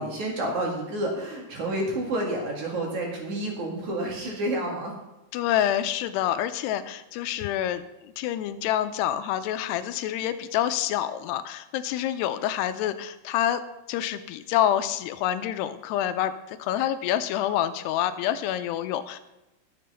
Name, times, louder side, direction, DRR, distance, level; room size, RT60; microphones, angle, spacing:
voice 1, 0.0-4.9, right 1 dB, 50° right, -1 dB, 3.1 m, -29 dB
voice 2, 5.3-13.6 13.9-19.2, left 11 dB, 85° left, 11 dB, 2.7 m, -27 dB
12.0 x 7.5 x 5.6 m, 0.97 s
omnidirectional pair, 4.8 m